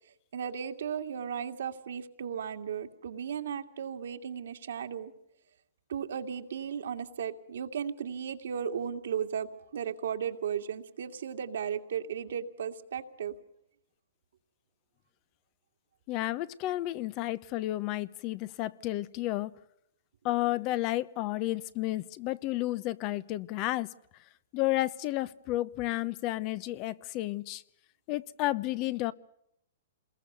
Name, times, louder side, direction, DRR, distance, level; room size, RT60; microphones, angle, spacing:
voice 1, 0.1-5.1 5.9-13.3, right 8 dB, 75° right, 2.4 m, -35 dB
voice 2, 16.1-19.5 20.2-23.9 24.5-27.6 28.1-29.1, left 16 dB, 35° left, 0.9 m, -31 dB
27.5 x 21.5 x 6.8 m
hypercardioid pair, 145°, 0 cm